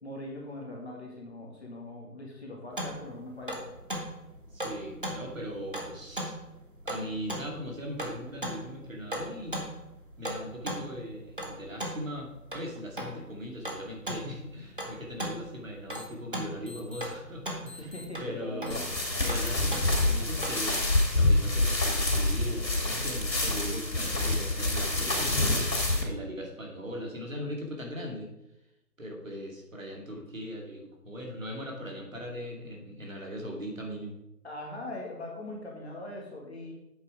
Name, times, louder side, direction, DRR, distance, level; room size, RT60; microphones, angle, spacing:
voice 1, 0.0-3.7 17.8-18.8 34.4-36.7, left 1 dB, 40° left, -1 dB, 2.2 m, -41 dB
sound 1, 2.7-20.5, right 1 dB, 30° right, 1.2 m, -39 dB
voice 2, 4.5-6.4 6.8-9.6 10.2-18.8 19.2-20.8 21.1-25.6 26.0-28.3 29.0-34.2, equal, 50° right, 0 dB, 2.3 m, -39 dB
sound 2, 15.9-16.0 16.7-17.0 17.7-18.0 18.7-19.0 19.7-20.0 20.7-21.0 21.7-22.0, left 3 dB, 65° left, 3.2 m, -47 dB
sound 3, 18.7-26.0, left 2 dB, 80° left, 2.7 m, -27 dB
8.1 x 7.0 x 4.8 m, 0.88 s
figure-of-eight pair, 170°, 50 cm